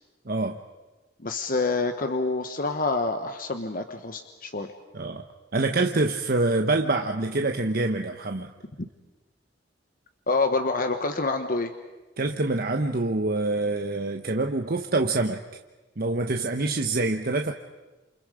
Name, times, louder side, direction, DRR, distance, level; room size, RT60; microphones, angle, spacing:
voice 1, 0.3-0.6 4.9-5.2 5.5-8.5 12.2-15.4 16.0-17.5, right 2 dB, 55° right, 4 dB, 1.1 m, -25 dB
voice 2, 1.2-4.7 8.8-8.9 10.3-11.7, left 3 dB, 50° left, 7 dB, 1.2 m, -27 dB
29.0 x 28.5 x 5.0 m, 1.2 s
head